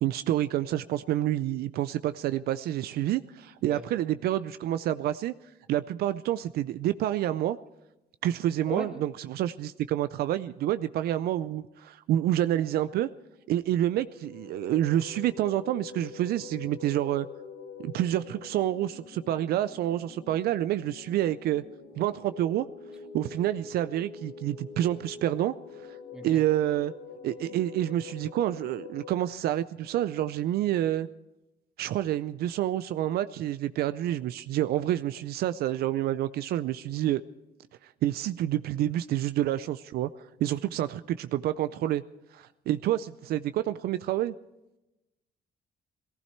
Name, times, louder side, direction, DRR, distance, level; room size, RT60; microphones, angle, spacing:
voice 1, 0.0-5.3 5.7-7.6 8.2-13.1 13.5-17.3 17.8-21.6 22.0-22.7 23.1-26.0 26.2-26.9 27.2-31.1 31.8-37.2 37.8-42.0 42.3-44.3, right 13 dB, 70° right, 13 dB, 0.5 m, -28 dB
sound 1, 14.1-29.1, left 5 dB, 80° left, 3.3 m, -45 dB
voice 2, 26.1-26.4, equal, 5° right, 3 dB, 2.0 m, -37 dB
18.5 x 15.0 x 4.5 m, 0.97 s
cardioid pair, 110°, 17 cm